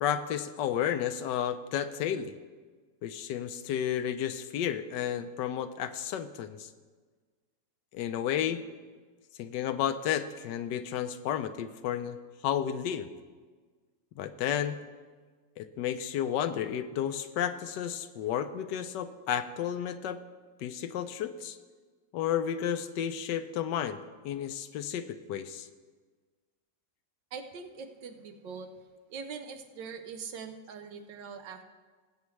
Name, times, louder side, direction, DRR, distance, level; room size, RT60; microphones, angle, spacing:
voice 1, 0.0-2.3 3.0-6.7 7.9-8.6 9.4-12.2 12.4-13.1 14.2-14.8 15.6-20.2 20.6-21.6 22.1-25.7, left 9 dB, 80° left, 11 dB, 1.3 m, -32 dB
voice 2, 27.3-28.7 29.1-31.6, right 5 dB, 90° right, 7 dB, 1.6 m, -42 dB
20.0 x 8.2 x 3.2 m, 1.4 s
omnidirectional pair, 1.9 m